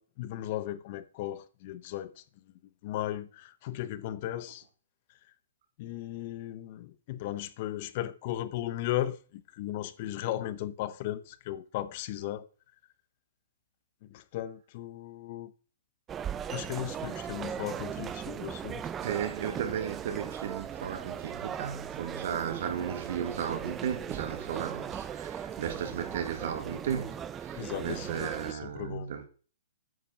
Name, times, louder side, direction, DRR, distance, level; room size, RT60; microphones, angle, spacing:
voice 1, 0.0-2.2 2.8-4.6 5.8-12.5 14.0-15.5 16.5-18.8 27.5-29.3, left 13 dB, 40° left, 0.7 m, -36 dB
sound 1, 16.1-28.5, right 8 dB, 15° right, 0.5 m, -38 dB
voice 2, 19.0-29.3, right 8 dB, 55° right, 1.5 m, -35 dB
9.0 x 5.7 x 5.5 m
hypercardioid pair, 155°, 0 cm